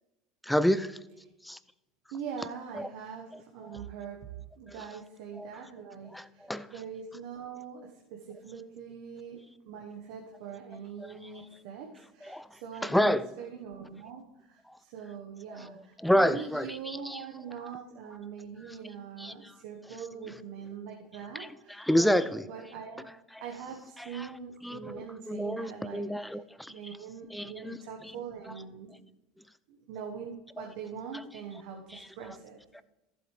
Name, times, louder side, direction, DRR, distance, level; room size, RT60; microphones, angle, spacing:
voice 1, 0.4-1.0 1.4-1.6 2.4-2.5 2.7-2.9 3.3-3.4 4.8-4.9 5.4-5.5 6.1-6.7 12.2-12.5 12.8-13.3 15.6-15.7 16.0-17.2 19.2-19.3 20.3-20.4 21.4-21.5 21.8-22.5 24.0-24.4 24.6-26.7 27.3-27.8 28.5-28.6 30.6-30.7 31.1-31.2 32.8-32.9, equal, 5° left, 15 dB, 0.6 m, -29 dB
voice 2, 2.1-4.3 4.6-23.0 23.4-26.0 26.7-29.0 29.7-32.6, right 7 dB, 65° right, 1 dB, 1.3 m, -43 dB
14.5 x 7.9 x 3.3 m, 0.99 s
hypercardioid pair, 75°, 0 cm